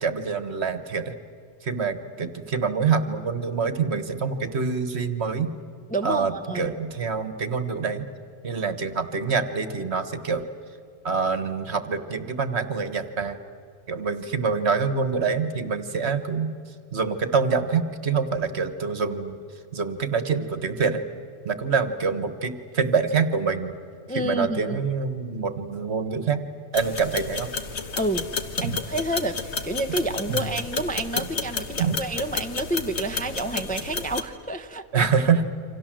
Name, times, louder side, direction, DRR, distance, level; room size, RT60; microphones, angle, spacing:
voice 1, 0.0-1.1 1.6-5.5 6.0-8.1 8.4-10.4 11.0-13.4 13.9-16.5 16.9-19.4 19.7-21.0 21.4-23.7 24.1-26.4 26.7-27.5 28.6-28.8 30.3-30.5 31.8-32.0 34.9-35.4, right 5 dB, 55° right, 11 dB, 1.6 m, -26 dB
voice 2, 5.9-6.8 24.1-24.8 28.0-28.3 28.6-35.1, right 1 dB, 10° left, 7 dB, 0.7 m, -29 dB
sound 1, 26.7-34.2, left 4 dB, 60° left, 1.5 m, -31 dB
28.5 x 25.5 x 7.6 m, 2.4 s
omnidirectional pair, 1.3 m